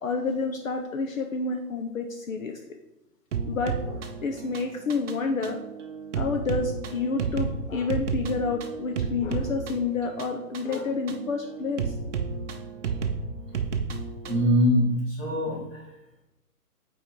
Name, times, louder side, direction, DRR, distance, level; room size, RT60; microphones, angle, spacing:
voice 1, 0.0-2.6 3.4-5.6 6.1-11.9, left 4 dB, 55° left, 4 dB, 0.7 m, -29 dB
sound 1, 3.3-14.5, right 5 dB, 50° right, 0.7 m, -32 dB
voice 2, 14.3-15.8, equal, 10° left, -5 dB, 1.3 m, -23 dB
5.8 x 4.4 x 4.5 m, 0.93 s
hypercardioid pair, 165°, 48 cm